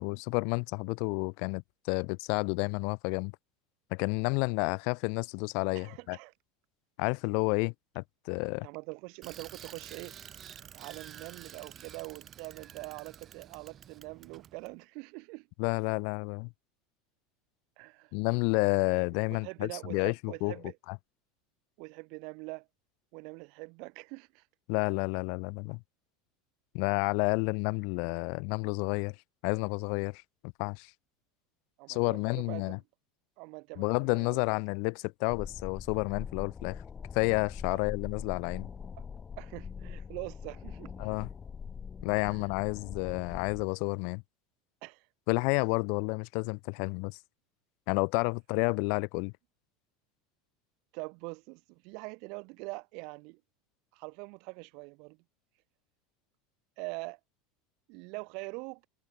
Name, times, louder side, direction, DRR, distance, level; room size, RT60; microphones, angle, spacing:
voice 1, 0.0-3.3 3.9-6.2 7.0-8.7 15.6-16.5 18.1-20.5 20.9-21.0 24.7-25.8 26.7-29.1 29.4-30.2 30.6-30.9 31.9-32.8 33.8-36.8 37.1-38.7 41.0-41.3 42.0-44.2 45.3-47.2 47.9-49.3, left 40 dB or more, 60° left, 0.9 m, -30 dB
voice 2, 5.7-6.3 8.6-10.2 10.7-15.5 17.8-18.2 19.3-20.8 21.8-22.7 23.1-24.5 31.8-32.8 33.4-34.4 37.7-37.8 39.4-41.1 42.3-42.4 44.8-45.1 50.9-53.4 53.9-55.2 56.8-57.2 57.9-58.8, right 31 dB, 60° right, 7.0 m, -43 dB
Bicycle, 9.2-14.7, right 9 dB, 30° right, 4.6 m, -49 dB
sound 1, 35.3-43.6, left 6 dB, 20° left, 2.6 m, -42 dB
supercardioid pair, 135°, 0 cm